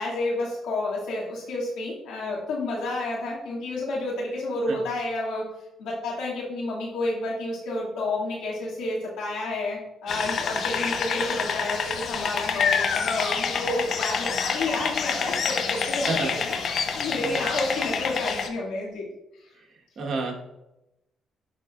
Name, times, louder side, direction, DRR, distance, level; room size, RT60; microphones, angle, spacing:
voice 1, 0.0-5.5 5.8-19.1 19.4-19.5, left 2 dB, 85° left, -5 dB, 2.3 m, -30 dB
sound 1, 10.1-18.5, left 6 dB, 60° left, 0.7 m, -27 dB
voice 2, 20.0-20.4, right 3 dB, 60° right, 1 dB, 1.4 m, -29 dB
11.5 x 3.8 x 2.5 m, 0.91 s
cardioid pair, 90°, 0 cm